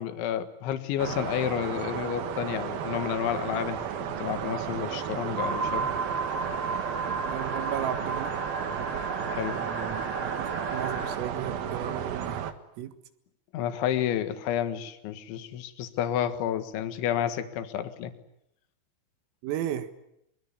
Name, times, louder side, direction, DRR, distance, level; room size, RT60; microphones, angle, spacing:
voice 1, 0.0-5.9 9.3-9.6 13.5-18.1, left 10 dB, 70° left, 9 dB, 3.9 m, -30 dB
sound 1, 1.0-12.5, right 8 dB, 60° right, 2.8 m, -33 dB
sound 2, 5.4-11.2, right 3 dB, 20° right, 3.6 m, -33 dB
voice 2, 7.2-8.3 9.5-10.3 10.7-12.4 12.8-12.9 19.4-19.9, right 10 dB, 85° right, 10 dB, 4.4 m, -35 dB
24.0 x 23.5 x 9.9 m, 0.79 s
omnidirectional pair, 5.8 m